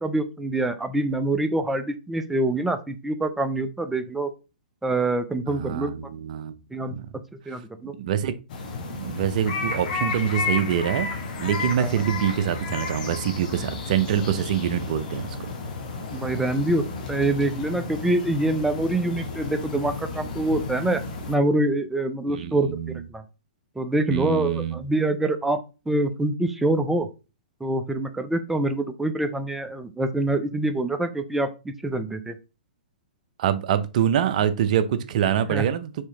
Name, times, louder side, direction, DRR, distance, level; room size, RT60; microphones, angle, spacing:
voice 1, 0.0-4.3 4.8-5.9 6.7-6.9 7.5-7.9 11.8-12.0 16.1-21.0 21.3-22.8 23.1-23.2 23.8-25.6 25.9-27.1 27.6-32.3 35.5-35.6, right 2 dB, 5° right, 8 dB, 0.4 m, -25 dB
voice 2, 5.5-6.6 6.9-7.1 8.0-8.3 8.8-11.1 11.4-15.5 22.3-23.0 24.1-24.8 33.4-36.1, right 9 dB, 55° right, 11 dB, 0.5 m, -25 dB
sound 1, 8.5-21.4, left 4 dB, 60° left, 1.0 m, -32 dB
4.5 x 2.8 x 3.2 m, 0.30 s
hypercardioid pair, 120°, 5 cm